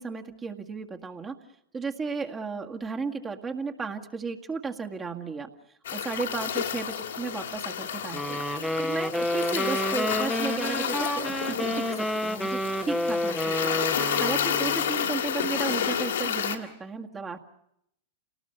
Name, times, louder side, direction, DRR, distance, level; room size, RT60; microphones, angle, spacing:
voice 1, 0.0-1.4 1.7-5.5 5.9-8.4 8.8-11.7 12.0-17.4, right 4 dB, 20° right, 3 dB, 1.9 m, -34 dB
sound 1, 5.8-16.6, left 8 dB, 80° left, 2.5 m, -30 dB
sound 2, 8.1-14.9, equal, ahead, 1.1 m, -30 dB
28.0 x 19.0 x 8.1 m, 0.78 s
hypercardioid pair, 110°, 0 cm